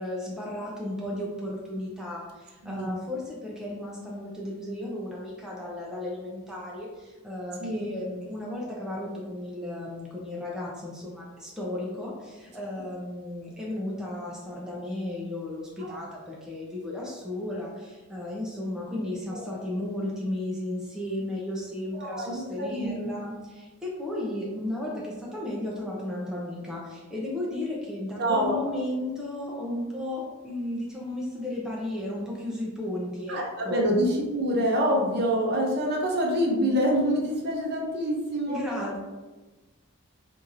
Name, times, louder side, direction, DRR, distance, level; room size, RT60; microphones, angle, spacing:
voice 1, 0.0-33.8 38.5-39.0, left 1 dB, 5° right, -5 dB, 0.5 m, -34 dB
voice 2, 2.6-2.9 7.6-7.9 15.8-16.0 19.3-19.5 21.9-23.1 28.2-28.6 33.3-38.6, equal, 45° right, 0 dB, 0.6 m, -26 dB
4.5 x 2.7 x 2.5 m, 1.2 s
head